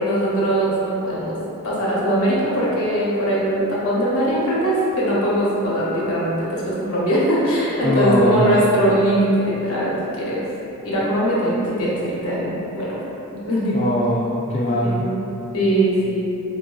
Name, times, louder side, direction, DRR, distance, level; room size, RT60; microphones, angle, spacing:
voice 1, 0.0-1.4 1.6-10.4 10.8-13.0 13.3-13.8 14.8-15.2 15.5-16.3, right 1 dB, 65° left, -6 dB, 0.8 m, -21 dB
voice 2, 7.8-8.6 13.7-15.0, equal, 30° left, -8 dB, 0.3 m, -20 dB
4.6 x 2.3 x 2.3 m, 2.9 s
head